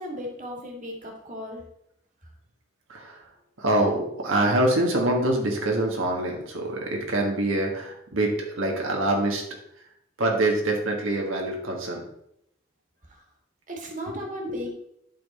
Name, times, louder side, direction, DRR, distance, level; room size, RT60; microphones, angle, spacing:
voice 1, 0.0-1.6 2.2-2.3 6.6-6.7 13.0-13.2 13.7-14.7, equal, 40° right, 1 dB, 1.8 m, -36 dB
voice 2, 2.9-3.2 3.6-9.4 10.2-12.0 14.5-14.6, right 1 dB, 85° right, 0 dB, 1.6 m, -25 dB
11.5 x 4.0 x 4.2 m, 0.75 s
head